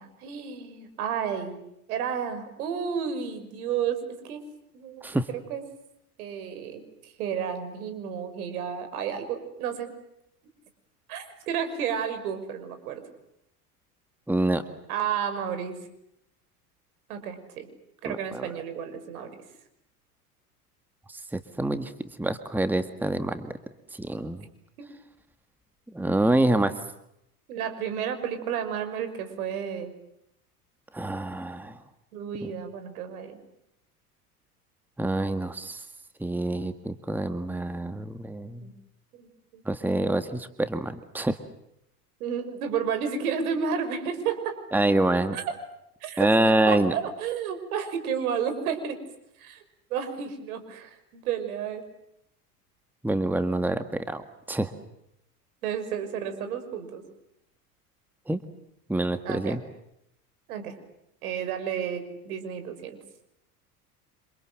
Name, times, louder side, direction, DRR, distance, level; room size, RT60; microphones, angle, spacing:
voice 1, 0.0-1.6 1.9-4.4 4.7-5.6 6.2-9.9 11.1-13.0 14.9-15.8 17.1-17.7 18.0-19.4 24.8-24.9 27.5-29.9 32.1-33.4 38.6-38.7 39.1-39.6 42.2-44.6 45.3-45.5 46.0-46.3 46.7-49.0 49.4-49.6 49.9-51.8 55.6-57.0 59.2-59.6 60.5-60.7 61.2-63.0, right 7 dB, 70° right, 9 dB, 6.0 m, -32 dB
voice 2, 14.3-14.6 18.1-18.5 21.1-21.9 22.2-23.6 23.9-24.5 25.9-26.7 30.9-31.8 35.0-35.8 36.2-38.7 39.7-41.4 44.7-45.4 46.2-46.9 53.0-54.7 58.3-58.4 58.9-59.6, right 1 dB, 5° right, 10 dB, 1.8 m, -26 dB
28.0 x 27.5 x 7.7 m, 0.80 s
hypercardioid pair, 80°, 46 cm